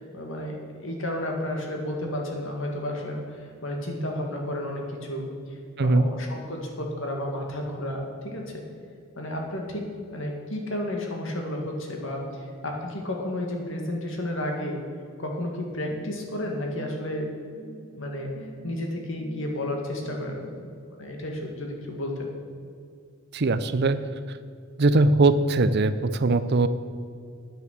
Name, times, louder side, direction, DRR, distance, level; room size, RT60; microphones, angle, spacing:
voice 1, 0.0-8.6 9.2-14.8 15.2-17.3 17.9-20.7 21.0-22.3, left 1 dB, 60° left, 1 dB, 2.1 m, -32 dB
voice 2, 5.8-6.1 23.3-24.0 24.8-26.7, right 2 dB, 50° right, 13 dB, 0.6 m, -21 dB
sound 1, 16.7-20.6, right 1 dB, 80° right, 2.0 m, -47 dB
9.8 x 9.3 x 6.7 m, 2.4 s
head